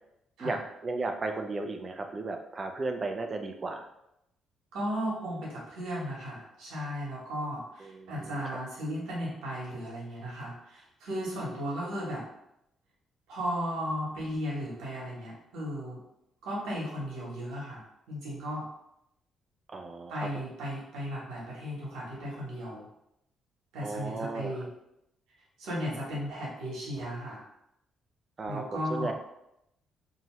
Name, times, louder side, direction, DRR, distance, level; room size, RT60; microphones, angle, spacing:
voice 1, 0.4-3.9 7.8-8.4 19.7-20.4 23.8-24.6 28.4-29.1, right 3 dB, 35° right, 5 dB, 0.4 m, -35 dB
voice 2, 4.7-12.2 13.3-16.0 16.4-17.8 18.1-18.6 20.1-22.8 23.7-24.7 25.6-27.4 28.4-29.1, equal, 90° right, -5 dB, 1.1 m, -35 dB
2.7 x 2.3 x 3.0 m, 0.82 s
cardioid pair, 90°, 0 cm